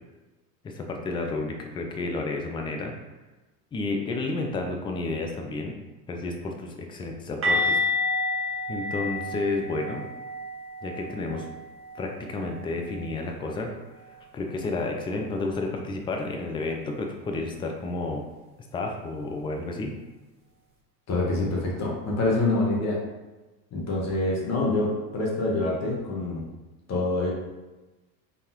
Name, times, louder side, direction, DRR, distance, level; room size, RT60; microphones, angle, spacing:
voice 1, 0.6-2.9 3.7-5.7 6.1-7.8 8.7-10.1 10.8-11.5 11.9-13.7 14.3-18.2 18.7-19.9, left 3 dB, 10° left, 2 dB, 0.3 m, -31 dB
sound 1, 7.4-13.2 13.5-13.7 14.0-14.2 17.4-17.5, left 2 dB, 25° right, 1.4 m, -30 dB
voice 2, 21.1-23.0 23.7-26.4 26.9-27.3, left 2 dB, 35° left, -3 dB, 1.2 m, -26 dB
4.0 x 3.5 x 2.9 m, 1.2 s
hypercardioid pair, 90°, 48 cm